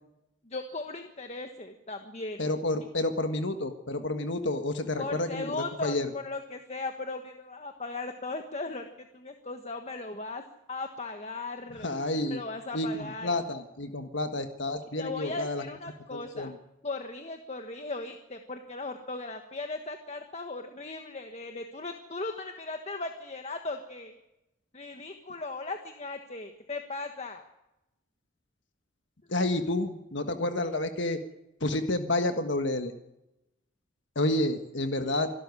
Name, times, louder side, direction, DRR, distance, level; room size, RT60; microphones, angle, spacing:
voice 1, 0.4-2.4 5.0-10.4 10.7-11.9 12.3-13.3 15.0-16.5 16.8-24.2 24.7-27.4 29.3-29.4, left 3 dB, 35° left, 6 dB, 1.4 m, -37 dB
voice 2, 2.4-6.1 11.8-12.4 12.7-15.6 16.1-16.6 29.3-31.2 31.6-32.9 34.1-35.3, left 2 dB, 65° left, 7 dB, 1.6 m, -30 dB
26.5 x 12.5 x 9.7 m, 0.93 s
head